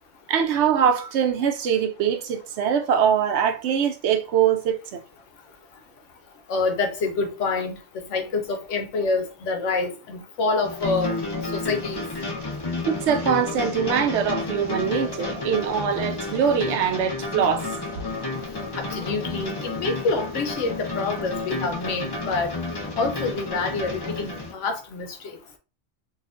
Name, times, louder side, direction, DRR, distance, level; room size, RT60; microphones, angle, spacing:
voice 1, 0.3-5.0 12.9-17.7, right 8 dB, 70° right, 0.9 m, -23 dB
voice 2, 6.5-11.1 11.5-12.0 18.8-22.5 23.0-25.1, left 3 dB, 85° left, 1.1 m, -27 dB
sound 1, 10.6-24.5, left 3 dB, 30° left, 0.4 m, -31 dB
3.9 x 2.4 x 2.5 m
omnidirectional pair, 1.2 m